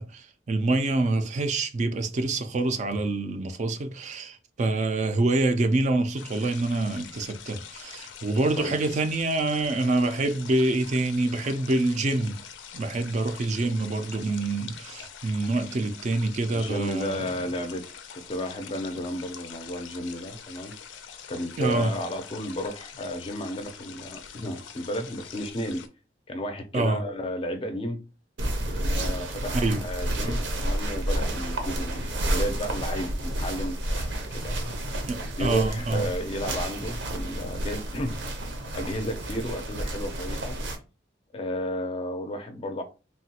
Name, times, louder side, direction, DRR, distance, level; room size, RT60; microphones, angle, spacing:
voice 1, 0.0-12.4 12.7-17.3 21.6-22.0 26.7-27.0 29.1-29.8 35.1-36.1, right 2 dB, 40° right, 0.3 m, -26 dB
sound 1, 6.2-25.9, left 8 dB, 90° left, 0.4 m, -44 dB
voice 2, 16.5-20.8 21.3-25.8 26.3-28.0 28.9-34.8 35.4-38.2 38.5-40.6 41.3-42.8, equal, 30° left, 0.4 m, -33 dB
sound 2, 28.4-40.7, right 1 dB, 80° right, 0.7 m, -30 dB
3.2 x 2.2 x 2.8 m
head